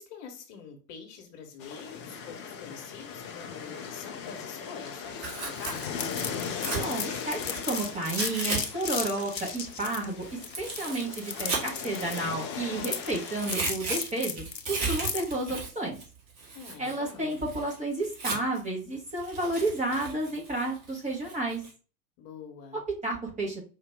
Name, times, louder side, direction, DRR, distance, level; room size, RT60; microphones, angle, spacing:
voice 1, 0.0-6.1 16.5-17.4 22.2-22.8, left 6 dB, 40° left, 3 dB, 1.4 m, -45 dB
sound 1, 1.6-13.5, left 6 dB, 20° left, 0.3 m, -39 dB
Tearing, 5.1-8.6 8.9-12.8 13.1-18.7 19.1-21.7, right 4 dB, 35° right, 2.0 m, -37 dB
sound 2, 5.6-15.3, left 6 dB, 85° left, 0.8 m, -36 dB
voice 2, 6.7-10.3 10.6-16.0 16.8-21.6 23.0-23.6, right 2 dB, 15° right, -2 dB, 1.3 m, -31 dB
4.9 x 2.6 x 3.5 m, 0.35 s
figure-of-eight pair, 95°, 49 cm